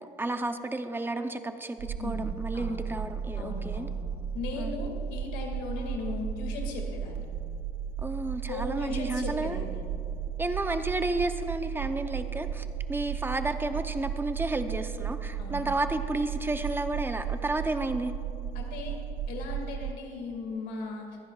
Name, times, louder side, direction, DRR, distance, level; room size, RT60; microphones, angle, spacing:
voice 1, 0.2-3.9 4.5-4.8 8.0-9.6 10.4-18.1, right 2 dB, 10° right, 8 dB, 0.7 m, -32 dB
sound 1, 1.8-19.9, right 7 dB, 60° right, 0.4 m, -35 dB
voice 2, 2.0-2.8 3.4-4.0 4.3-7.3 8.5-9.8 15.4-15.7 18.5-19.0 19.3-21.1, left 3 dB, 80° left, 1 dB, 2.2 m, -37 dB
25.0 x 10.0 x 2.4 m, 2.4 s
cardioid pair, 110°, 17 cm